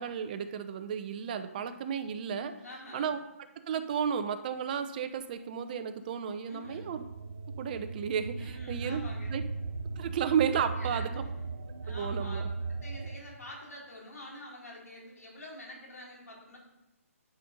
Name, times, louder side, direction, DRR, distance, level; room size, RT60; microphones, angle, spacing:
voice 1, 0.0-2.5 2.9-3.2 3.7-7.0 7.6-9.0 9.3-9.4 9.8-11.2 11.9-12.5, right 7 dB, 35° right, 8 dB, 0.7 m, -33 dB
voice 2, 2.6-3.2 6.5-6.9 8.4-9.4 10.7-11.5 11.8-12.4 12.8-16.6, left 1 dB, 90° left, -3 dB, 3.9 m, -47 dB
sound 1, 6.6-13.2, right 4 dB, 85° right, 1.2 m, -37 dB
11.0 x 5.4 x 5.2 m, 0.94 s
hypercardioid pair, 160°, 8 cm